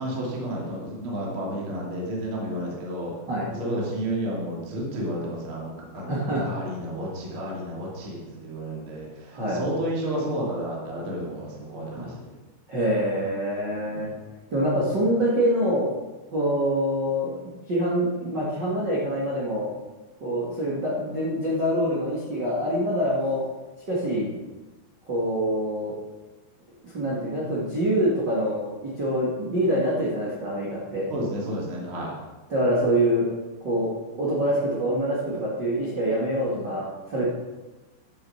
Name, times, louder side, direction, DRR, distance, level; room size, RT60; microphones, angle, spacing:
voice 1, 0.0-3.1 3.5-6.2 6.4-12.2 13.8-14.2 24.1-24.3 31.1-32.1 36.5-36.7, right 1 dB, 35° right, -3 dB, 2.4 m, -31 dB
voice 2, 5.9-6.4 9.3-9.6 11.9-12.1 12.7-14.1 14.5-15.9 16.3-17.3 17.7-19.7 20.2-23.4 23.9-24.3 25.1-25.9 26.8-31.0 32.5-33.2 33.6-33.9 34.2-37.3, equal, 75° right, -6 dB, 1.0 m, -25 dB
12.0 x 7.7 x 5.8 m, 1.2 s
omnidirectional pair, 5.8 m